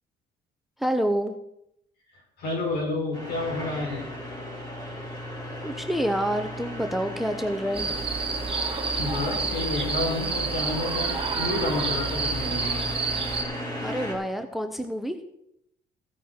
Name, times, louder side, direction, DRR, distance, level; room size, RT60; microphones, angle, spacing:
voice 1, 0.8-1.3 5.6-7.9 13.8-15.2, equal, ahead, 8 dB, 0.9 m, -27 dB
voice 2, 2.4-4.1 9.0-12.8, left 2 dB, 70° left, -1 dB, 6.4 m, -30 dB
sound 1, 3.1-14.2, equal, 25° left, 5.1 m, -36 dB
sound 2, 7.7-13.4, right 4 dB, 35° right, 1.7 m, -29 dB
15.5 x 9.0 x 4.5 m, 0.78 s
cardioid pair, 110°, 17 cm